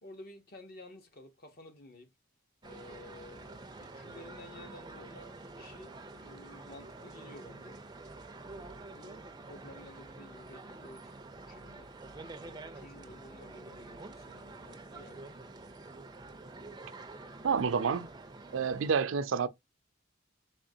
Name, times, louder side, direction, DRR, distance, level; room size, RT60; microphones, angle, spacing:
voice 1, 0.0-2.1 2.6-7.8 8.4-11.1 11.4-11.9 12.4-15.4, left 1 dB, 50° left, 0.9 m, -53 dB
sound 1, 2.6-18.9, right 2 dB, 20° right, 0.4 m, -48 dB
voice 2, 17.4-18.1 18.5-19.5, right 6 dB, 75° right, 0.4 m, -29 dB
3.6 x 3.6 x 2.6 m
head